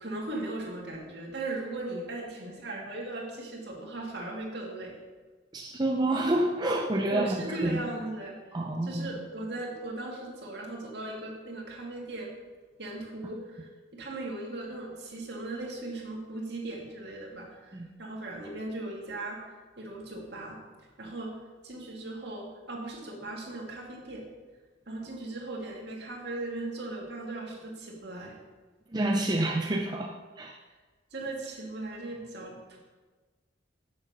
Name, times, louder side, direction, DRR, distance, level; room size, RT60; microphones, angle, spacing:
voice 1, 0.0-5.0 7.1-8.4 8.8-12.3 12.8-19.5 19.8-20.6 21.0-21.3 21.6-24.2 24.9-28.4 31.1-32.8, right 2 dB, 60° right, -2 dB, 2.1 m, -38 dB
voice 2, 5.5-7.8 8.5-9.1 17.7-17.9 28.9-30.6, right 1 dB, 20° right, 0 dB, 0.5 m, -28 dB
7.6 x 6.3 x 6.3 m, 1.3 s
head